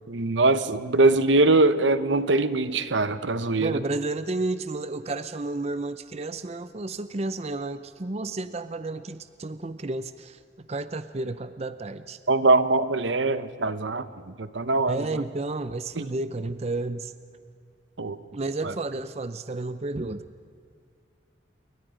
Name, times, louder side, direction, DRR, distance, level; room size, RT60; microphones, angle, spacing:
voice 1, 0.1-3.8 12.3-14.1 14.4-15.2 16.0-16.1 18.0-18.2 18.6-18.7, right 2 dB, 80° right, 1.0 m, -22 dB
voice 2, 3.6-12.2 14.9-17.1 18.3-20.2, right 2 dB, 35° right, 0.6 m, -31 dB
28.0 x 23.5 x 5.1 m
head